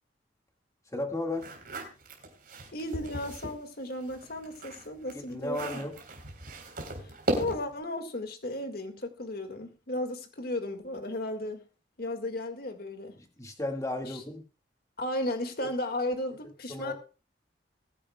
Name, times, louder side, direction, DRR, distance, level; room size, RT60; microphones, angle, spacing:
voice 1, 0.9-1.5 5.1-5.9 13.2-14.4 16.7-16.9, left 2 dB, 20° left, 1.8 m, -34 dB
sound 1, 1.3-3.6 4.0-7.8, right 1 dB, 50° right, 3.7 m, -36 dB
voice 2, 2.7-5.7 7.4-11.6 12.0-13.2 14.1-14.2 15.0-16.9, left 1 dB, 55° left, 1.9 m, -34 dB
21.5 x 10.0 x 2.3 m
head